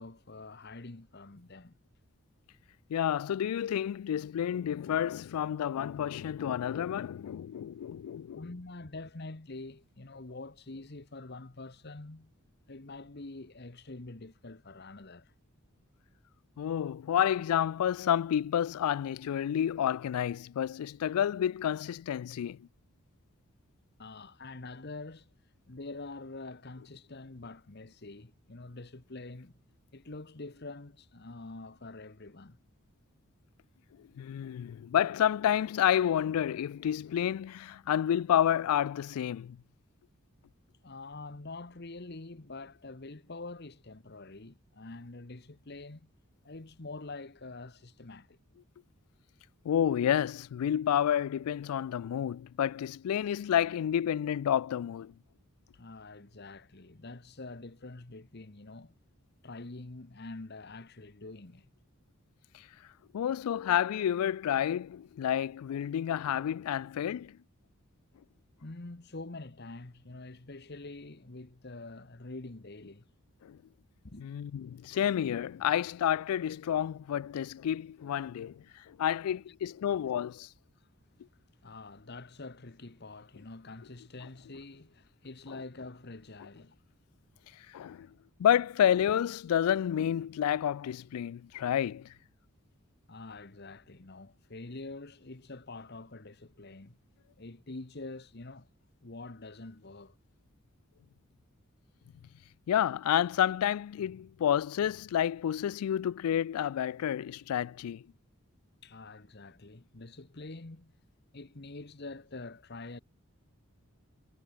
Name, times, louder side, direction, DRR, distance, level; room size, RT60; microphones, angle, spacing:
voice 1, 0.0-1.8 8.3-12.3 12.7-15.3 24.0-25.3 25.7-29.5 29.9-32.6 40.8-46.1 46.4-48.4 55.7-58.9 59.4-61.7 68.6-73.1 74.0-74.3 80.8-80.9 81.6-86.8 87.8-88.1 93.1-97.0 97.4-98.7 99.0-100.1 108.8-110.9 111.3-113.0, left 2 dB, 50° left, 1.2 m, -46 dB
voice 2, 2.9-8.5 16.6-22.7 34.0-39.6 49.6-55.1 63.1-67.4 73.4-73.6 74.2-80.5 85.5-85.6 87.7-88.1 88.4-92.1 102.7-108.0, left 9 dB, 90° left, 0.3 m, -30 dB
head